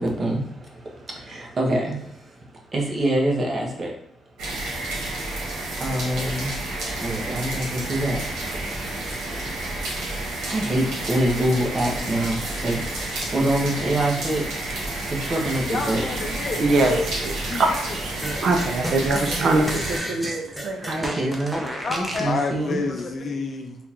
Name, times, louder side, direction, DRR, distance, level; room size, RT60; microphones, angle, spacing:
voice 1, 0.0-2.4 2.7-3.9 5.3-5.4 5.8-16.0 20.8-22.8, right 1 dB, 35° right, 0 dB, 0.9 m, -26 dB
sound 1, 4.4-20.0, right 2 dB, 80° right, 1.2 m, -30 dB
voice 2, 15.7-17.1 17.5-17.8 21.8-23.8, left 3 dB, 45° left, 4 dB, 0.5 m, -28 dB
voice 3, 16.6-18.1 18.4-21.2, right 2 dB, 55° right, 4 dB, 0.5 m, -23 dB
sound 2, 18.2-22.3, right 1 dB, 5° right, 0.7 m, -31 dB
3.6 x 2.4 x 2.9 m, 0.75 s
cardioid pair, 90°, 0 cm